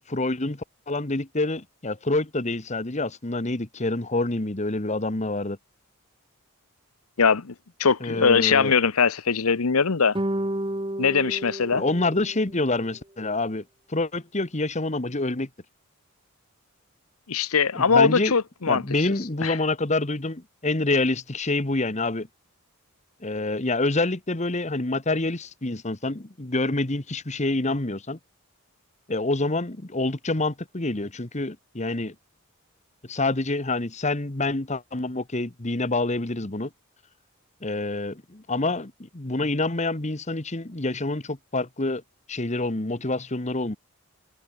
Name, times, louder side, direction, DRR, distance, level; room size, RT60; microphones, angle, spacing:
voice 1, 0.1-5.6 8.0-8.7 11.7-13.6 13.9-15.5 17.7-18.3 18.7-22.3 23.2-28.2 29.1-32.1 33.1-36.7 37.6-42.0 42.3-43.8, left 2 dB, 30° left, 1.3 m, -27 dB
voice 2, 7.2-7.5 7.8-10.2 11.0-11.8 17.3-18.8 19.4-19.6, left 5 dB, 80° left, 0.9 m, -21 dB
sound 1, 10.1-12.7, right 1 dB, 25° right, 2.3 m, -31 dB
head